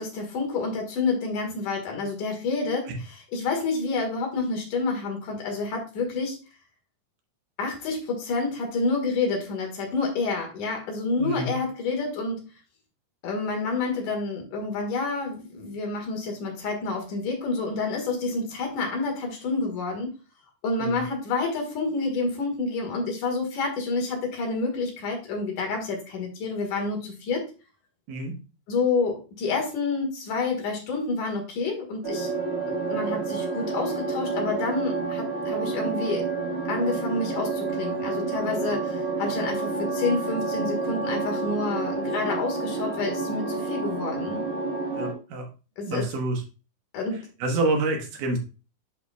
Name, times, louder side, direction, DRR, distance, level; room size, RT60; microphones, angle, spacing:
voice 1, 0.0-6.4 7.6-12.4 13.2-20.1 20.6-27.5 28.7-32.3 32.7-36.3 36.7-44.4 45.8-46.1 46.9-47.3, left 3 dB, 80° left, 1 dB, 3.3 m, -28 dB
voice 2, 11.2-11.6 20.8-21.0 28.1-28.3 44.9-45.5 45.9-46.4 47.4-48.4, right 2 dB, 90° right, 3 dB, 2.9 m, -27 dB
sound 1, 32.0-45.1, right 3 dB, 60° right, 0.6 m, -29 dB
10.0 x 4.2 x 2.3 m, 0.33 s
omnidirectional pair, 3.6 m